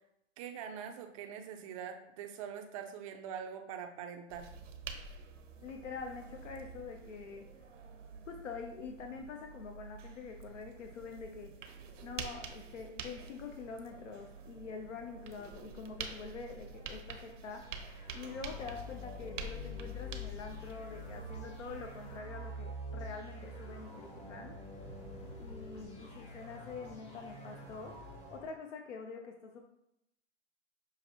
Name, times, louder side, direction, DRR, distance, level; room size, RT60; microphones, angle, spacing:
voice 1, 0.4-4.5, right 8 dB, 30° right, 5 dB, 0.4 m, -43 dB
sound 1, 4.3-22.2, right 5 dB, 75° right, 0.7 m, -48 dB
voice 2, 5.6-7.5 8.3-11.5 12.0-17.8 18.1-24.5 25.4-27.9 28.3-29.7, left 5 dB, 75° left, 4 dB, 0.7 m, -45 dB
sound 2, 17.5-28.5, left 1 dB, 15° left, 0.7 m, -46 dB
5.8 x 2.5 x 2.9 m, 0.81 s
hypercardioid pair, 120°, 37 cm